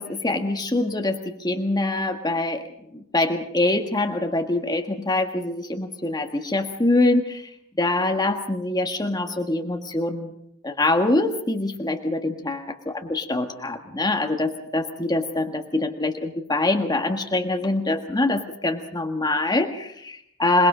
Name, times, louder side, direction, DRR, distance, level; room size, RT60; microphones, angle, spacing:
voice 1, 0.0-2.6 2.9-7.5 7.8-10.3 10.6-20.7, left 2 dB, 20° left, 4 dB, 1.6 m, -24 dB
27.5 x 20.0 x 5.1 m, 0.73 s
head